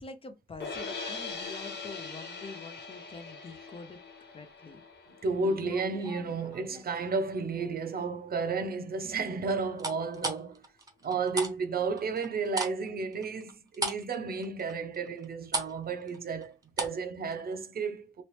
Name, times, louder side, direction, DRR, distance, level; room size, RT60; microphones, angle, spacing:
voice 1, 0.0-4.0 4.3-4.8, left 3 dB, 30° left, 0.5 m, -46 dB
sound 1, 0.6-6.8, left 4 dB, 70° left, 1.1 m, -42 dB
voice 2, 5.2-10.6 11.0-18.2, right 4 dB, 55° right, 0.6 m, -32 dB
sound 2, 5.4-7.1 7.6-8.0 9.8-11.5 11.8-17.1 17.3-17.4, right 2 dB, 20° right, 0.7 m, -36 dB
3.1 x 3.0 x 3.1 m
wide cardioid pair, 160°, 18 cm